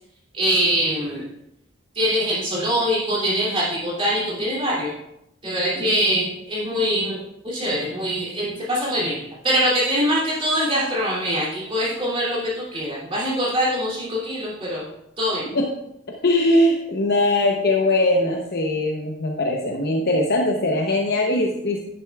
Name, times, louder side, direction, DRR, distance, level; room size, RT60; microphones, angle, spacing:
voice 1, 0.3-1.2 1.9-4.9 5.4-14.9 15.2-15.4, equal, 25° right, -7 dB, 2.8 m, -23 dB
voice 2, 16.2-21.8, left 1 dB, 50° left, 0 dB, 0.8 m, -21 dB
10.5 x 9.7 x 2.4 m, 0.85 s
head